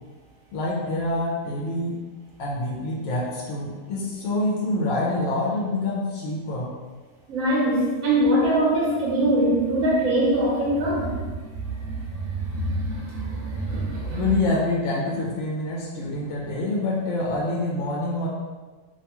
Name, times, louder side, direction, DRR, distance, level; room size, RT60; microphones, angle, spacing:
voice 1, 0.5-2.0 2.4-6.7 14.1-18.3, left 2 dB, 75° left, -4 dB, 0.9 m, -26 dB
voice 2, 7.3-14.3, right 1 dB, 80° right, -5 dB, 1.0 m, -23 dB
2.6 x 2.2 x 2.8 m, 1.4 s
omnidirectional pair, 1.4 m